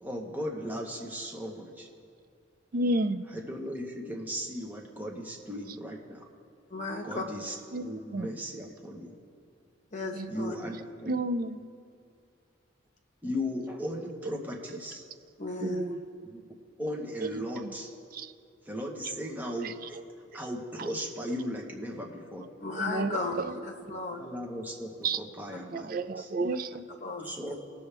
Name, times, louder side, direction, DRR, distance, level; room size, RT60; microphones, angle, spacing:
voice 1, 0.0-1.9 3.3-6.3 7.0-9.1 10.3-11.2 13.2-15.0 16.2-16.5 16.8-17.9 18.7-20.0 20.3-22.4 23.9-26.3 27.2-27.5, equal, 10° right, -1 dB, 1.0 m, -37 dB
voice 2, 2.7-3.2 7.7-8.3 10.1-10.3 11.1-11.6 15.6-16.0 17.4-17.7 18.1-18.3 19.1-19.2 19.6-19.7 20.8-20.9 22.8-23.5 25.0-25.2 25.7-26.8, right 2 dB, 50° right, 11 dB, 0.4 m, -31 dB
voice 3, 6.7-7.2 9.9-10.6 15.4-15.8 22.6-24.3 26.9-27.3, left 3 dB, 40° left, 3 dB, 1.1 m, -35 dB
19.0 x 7.0 x 3.4 m, 2.6 s
head